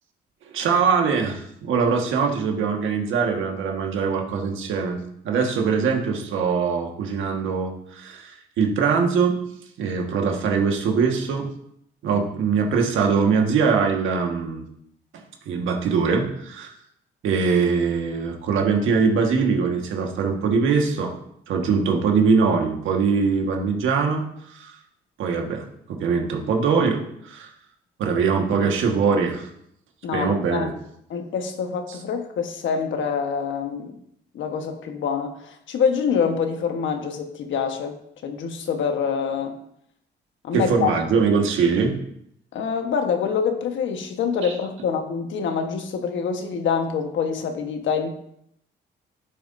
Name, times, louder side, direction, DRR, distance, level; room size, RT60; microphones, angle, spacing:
voice 1, 0.5-5.0 5.2-9.3 9.8-11.5 12.0-14.6 15.1-16.7 17.2-21.1 21.5-24.2 24.5-24.8 25.2-25.6 25.9-27.5 28.0-29.5 30.1-30.7 40.5-41.9 44.4-44.5, right 5 dB, 80° right, 2 dB, 1.6 m, -22 dB
voice 2, 30.0-30.7 31.1-34.0 34.3-39.6 40.4-41.0 42.5-48.1, left 6 dB, 75° left, 5 dB, 1.3 m, -26 dB
11.0 x 8.6 x 2.7 m, 0.74 s
cardioid pair, 90°, 20 cm